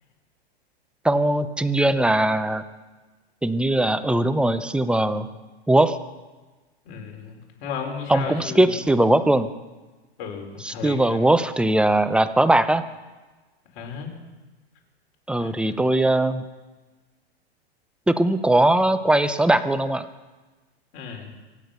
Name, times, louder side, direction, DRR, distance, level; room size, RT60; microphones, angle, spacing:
voice 1, 1.0-2.6 3.4-5.3 5.7-6.0 8.1-9.5 10.6-12.8 15.3-16.4 18.1-20.1, right 1 dB, 5° right, 11 dB, 0.6 m, -20 dB
voice 2, 6.9-8.8 10.2-11.2 13.7-14.1 15.4-15.8 20.9-21.3, left 6 dB, 55° left, 2 dB, 4.5 m, -34 dB
24.5 x 8.7 x 6.5 m, 1.3 s
hypercardioid pair, 120°, 33 cm